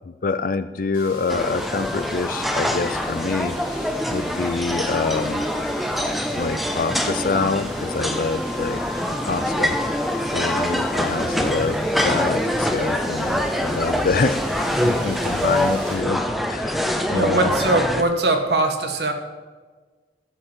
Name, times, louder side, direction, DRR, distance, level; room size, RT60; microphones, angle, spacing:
voice 1, 0.1-5.4 6.4-8.8 9.2-10.0 10.3-16.8 17.1-17.5, left 4 dB, 50° left, 12 dB, 0.4 m, -26 dB
sound 1, 0.9-16.8, left 1 dB, 30° right, 3.9 m, -38 dB
sound 2, 1.3-18.0, equal, ahead, 0.5 m, -24 dB
voice 2, 17.1-19.1, right 2 dB, 70° right, 5 dB, 1.3 m, -21 dB
12.0 x 5.4 x 7.3 m, 1.4 s
head